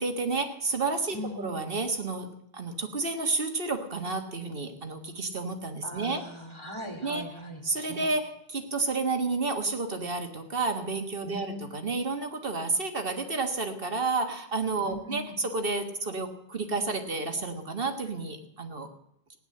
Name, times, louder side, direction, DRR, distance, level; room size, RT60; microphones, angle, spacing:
voice 1, 0.0-6.2 7.0-7.2 7.6-18.9, right 3 dB, 65° right, 6 dB, 1.8 m, -31 dB
voice 2, 1.1-1.5 5.8-8.0 11.2-11.6 14.8-15.4, equal, 25° left, 3 dB, 2.8 m, -40 dB
16.5 x 10.0 x 7.7 m, 0.78 s
omnidirectional pair, 1.0 m